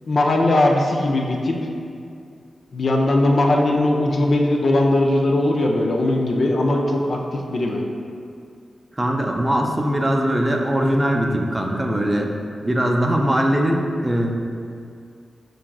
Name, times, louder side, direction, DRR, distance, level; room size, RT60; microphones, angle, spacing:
voice 1, 0.1-1.6 2.7-7.8, left 1 dB, 65° left, 0 dB, 0.4 m, -19 dB
voice 2, 9.0-12.3 12.6-14.3, equal, 25° right, 1 dB, 0.5 m, -21 dB
5.7 x 2.5 x 2.3 m, 2.4 s
cardioid pair, 45°, 0 cm